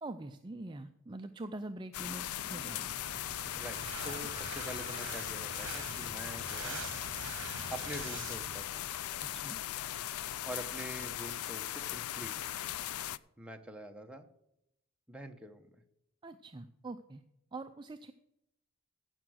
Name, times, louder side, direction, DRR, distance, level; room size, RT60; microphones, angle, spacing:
voice 1, 0.0-3.0 9.2-9.6 16.2-17.2 17.5-18.1, right 2 dB, 20° right, 8 dB, 0.4 m, -44 dB
sound 1, 1.9-13.2, left 12 dB, 80° left, 0.4 m, -39 dB
sound 2, 2.6-7.2, left 3 dB, 45° left, 0.9 m, -50 dB
sound 3, 3.0-8.6, right 5 dB, 60° right, 1.1 m, -46 dB
voice 2, 3.5-6.8 7.7-8.8 10.4-12.4 13.4-14.3 15.1-15.7, right 1 dB, 5° right, 4 dB, 0.9 m, -45 dB
15.0 x 5.9 x 6.3 m, 0.81 s
head